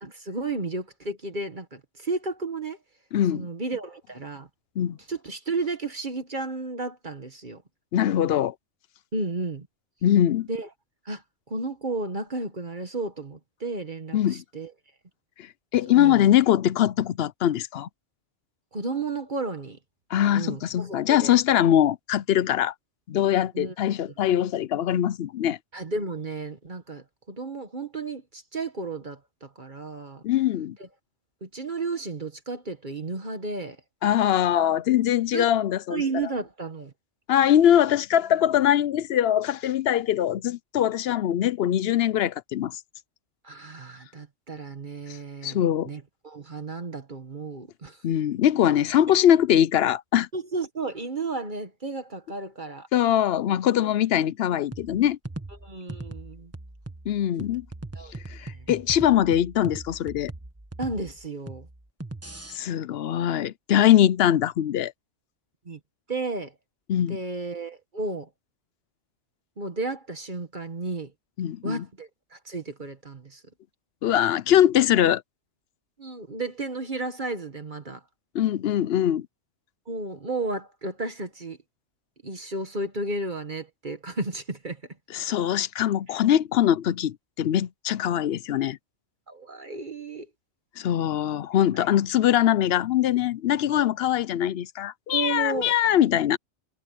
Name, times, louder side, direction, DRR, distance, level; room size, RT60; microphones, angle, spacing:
voice 1, 0.0-2.8 3.3-4.5 5.1-7.6 9.1-9.7 10.5-10.7 11.0-11.2 11.5-14.7 16.0-16.2 18.7-19.8 20.3-21.4 23.5-23.7 25.7-30.2 31.4-33.8 35.0-35.1 35.3-35.5 35.9-36.9 43.4-48.0 50.3-52.9 55.6-56.5 57.9-58.1 58.4-58.7 60.8-61.7 65.6-65.8 66.1-66.5 67.1-68.3 69.6-71.1 71.6-73.4 76.0-78.0 79.9-81.6 82.2-84.8 89.3-90.3 91.7-91.8 95.1-95.7, right 3 dB, 40° right, 1.6 m, -33 dB
voice 2, 3.1-3.5 4.8-5.0 7.9-8.5 10.0-10.5 14.1-14.4 15.4-15.5 15.7-17.9 20.1-22.7 23.1-25.6 30.2-30.8 34.0-36.0 37.3-42.8 45.4-45.9 48.0-50.3 52.9-55.2 57.1-57.7 58.3-60.3 62.5-64.9 66.9-67.2 71.4-71.8 74.0-75.2 78.3-79.3 85.1-88.8 90.8-96.4, left 11 dB, 65° left, 0.7 m, -22 dB
sound 1, 54.7-62.6, right 2 dB, 10° right, 1.3 m, -40 dB
omnidirectional pair, 1.2 m